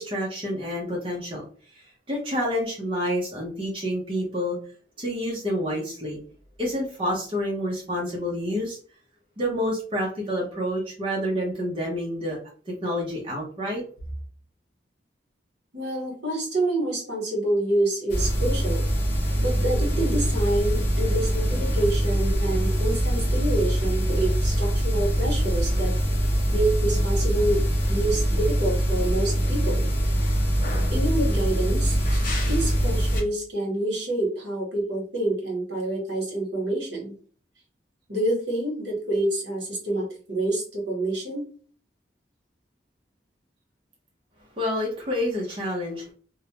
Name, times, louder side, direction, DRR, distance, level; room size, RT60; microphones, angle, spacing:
voice 1, 0.0-1.4 1.7-4.6 5.0-6.2 6.6-8.8 9.4-12.4 12.7-13.8 44.6-46.1, equal, 30° right, -3 dB, 0.6 m, -28 dB
voice 2, 15.7-18.9 19.4-25.9 26.5-29.9 30.9-37.1 38.1-41.4, right 1 dB, 70° right, -1 dB, 1.0 m, -27 dB
sound 1, 18.1-33.2, equal, 50° left, 0.6 m, -23 dB
2.3 x 2.0 x 2.8 m, 0.43 s
head